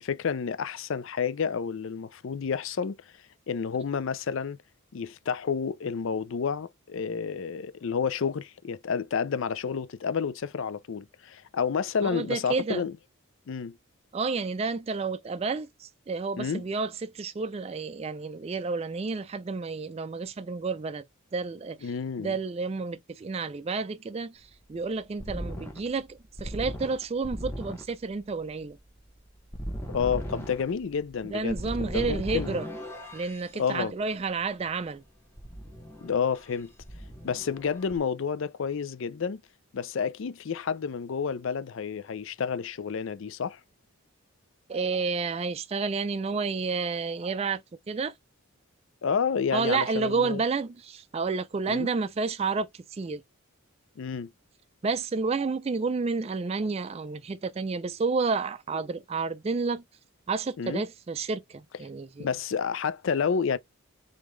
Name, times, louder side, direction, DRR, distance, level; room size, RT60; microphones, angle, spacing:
voice 1, 0.0-3.0 3.5-4.6 4.9-12.9 13.5-13.8 16.4-16.6 21.8-22.3 29.9-32.6 33.6-33.9 36.0-36.7 37.2-39.4 39.7-43.6 49.0-50.4 51.7-51.9 54.0-54.3 60.6-60.8 62.2-63.6, left 6 dB, 60° left, 0.4 m, -30 dB
voice 2, 12.0-12.8 14.1-21.0 21.3-21.9 22.2-28.8 31.2-32.7 33.1-35.0 44.7-47.6 47.9-48.1 49.5-53.2 54.8-59.8 60.3-62.3, right 4 dB, 30° right, 0.3 m, -30 dB
sound 1, 24.4-33.5 35.4-36.5 36.8-38.0, equal, 10° left, 1.0 m, -38 dB
3.6 x 3.5 x 3.1 m
head